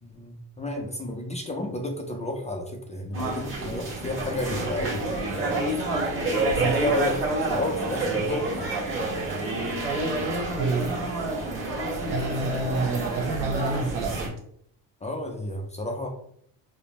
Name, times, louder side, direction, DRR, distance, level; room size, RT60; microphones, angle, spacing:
voice 1, 0.0-5.1 6.5-8.7 15.0-16.1, left 1 dB, 20° left, 2 dB, 0.3 m, -31 dB
sound 1, 3.1-14.3, right 2 dB, 30° right, 1.4 m, -28 dB
voice 2, 10.6-10.9 12.1-14.3, right 3 dB, 90° right, 2 dB, 1.0 m, -28 dB
5.0 x 2.0 x 2.9 m, 0.67 s
cardioid pair, 125°, 43 cm